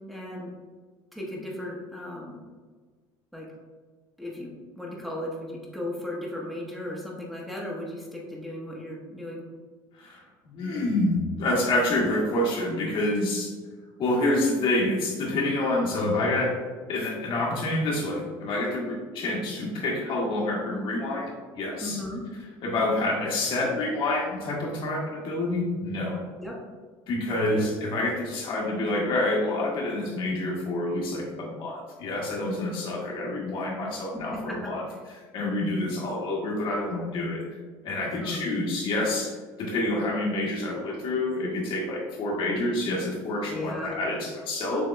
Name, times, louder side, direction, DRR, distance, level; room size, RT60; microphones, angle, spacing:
voice 1, 0.1-0.5 1.1-2.4 3.3-3.5 4.2-4.5 4.8-9.4 21.8-22.2 26.4-26.6 27.3-27.6 34.1-34.6 38.0-38.4 43.4-44.0, left 1 dB, ahead, -4 dB, 0.9 m, -36 dB
voice 2, 10.0-13.5 14.0-16.5 16.9-22.0 22.6-26.2 27.1-34.8 35.3-37.4 37.8-44.9, left 1 dB, 55° left, -3 dB, 1.4 m, -27 dB
6.6 x 2.9 x 2.2 m, 1.4 s
supercardioid pair, 100°, 10 cm